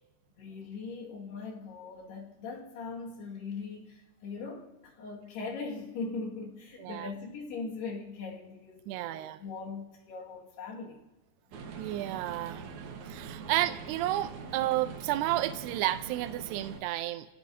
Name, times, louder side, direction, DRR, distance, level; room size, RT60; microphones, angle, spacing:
voice 1, 0.4-11.0 14.4-14.5, left 4 dB, 70° left, -2 dB, 4.0 m, -40 dB
voice 2, 6.8-7.1 8.9-9.4 11.8-17.3, right 15 dB, 80° right, 9 dB, 2.6 m, -32 dB
sound 1, 11.5-16.8, right 5 dB, 65° right, 2.0 m, -43 dB
29.0 x 18.0 x 2.7 m, 1.1 s
omnidirectional pair, 4.9 m